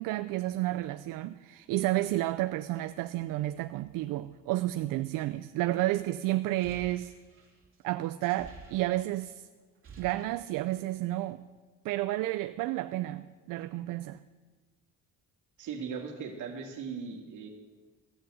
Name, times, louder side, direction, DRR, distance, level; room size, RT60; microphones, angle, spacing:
voice 1, 0.0-7.1 7.8-9.5 10.0-11.5 11.8-14.2, right 16 dB, 85° right, 0.5 m, -31 dB
sound 1, 6.4-9.3 9.6-11.0, right 4 dB, 40° right, 2.8 m, -52 dB
voice 2, 15.6-17.5, right 6 dB, 65° right, 2.2 m, -38 dB
14.5 x 7.7 x 7.9 m
cardioid pair, 155°, 32 cm